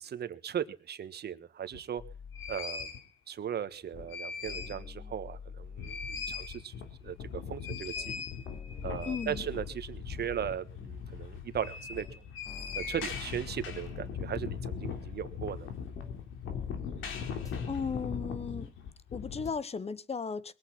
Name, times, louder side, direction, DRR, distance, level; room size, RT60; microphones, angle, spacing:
voice 1, 0.0-2.0 2.5-3.0 3.3-6.7 7.0-8.3 8.8-12.3 12.7-15.7, right 9 dB, 55° right, 1.3 m, -38 dB
sound 1, 1.7-1.8 2.3-3.0 3.8-4.9 5.2-5.3 5.6-19.5, left 6 dB, 85° left, 3.2 m, -39 dB
sound 2, 2.0-2.6 4.0-4.2 4.5-6.6 8.0-8.2 8.4-10.6 12.0-12.2 12.4-14.6 16.0-16.2 16.4-18.6 19.5-19.6, left 6 dB, 15° left, 2.3 m, -46 dB
voice 2, 9.0-9.4 17.6-18.7 19.1-20.5, left 5 dB, 30° left, 1.1 m, -35 dB
21.5 x 8.5 x 5.9 m
cardioid pair, 90°, 20 cm